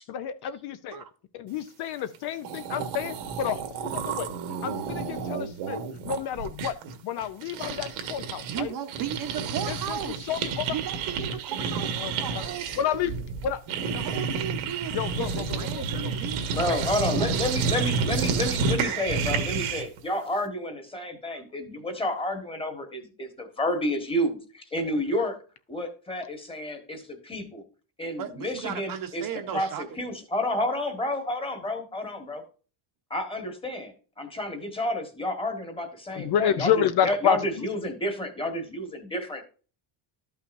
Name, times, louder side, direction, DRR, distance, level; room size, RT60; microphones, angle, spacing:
voice 1, 0.1-1.0 1.3-4.3 4.6-6.7 7.0-8.7 9.7-10.7 12.0-12.5 12.8-13.2 13.4-13.6 14.9-15.5 15.8-16.1 36.1-37.7, left 9 dB, 55° left, 0.7 m, -29 dB
sound 1, 2.1-2.2 2.4-8.6 8.9-20.0, right 5 dB, 85° right, 1.7 m, -30 dB
voice 2, 8.4-10.3 10.7-13.2 13.9-16.7 28.2-29.8, right 9 dB, 45° right, 0.9 m, -36 dB
voice 3, 16.5-25.4 25.7-27.6 28.0-32.4 33.1-39.4, left 1 dB, 10° left, 1.4 m, -30 dB
12.5 x 5.7 x 2.6 m
cardioid pair, 165°, 48 cm